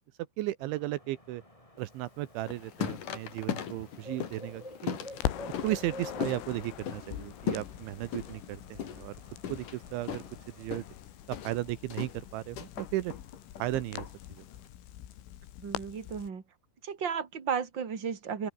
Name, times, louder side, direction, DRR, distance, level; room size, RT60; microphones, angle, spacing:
voice 1, 0.4-1.4 1.8-5.0 5.6-9.1 9.5-10.2 10.6-10.8 11.3-13.1 13.6-14.4, right 16 dB, 80° right, 3.3 m, -35 dB
sound 1, 0.6-10.7, left 1 dB, 5° left, 5.3 m, -50 dB
sound 2, 2.4-14.7, left 9 dB, 50° left, 3.2 m, -39 dB
Crackle, 2.5-4.6 4.9-16.3, left 12 dB, 85° left, 4.7 m, -43 dB
voice 2, 15.6-16.4 16.8-18.5, right 7 dB, 30° right, 2.5 m, -34 dB
omnidirectional pair, 5.6 m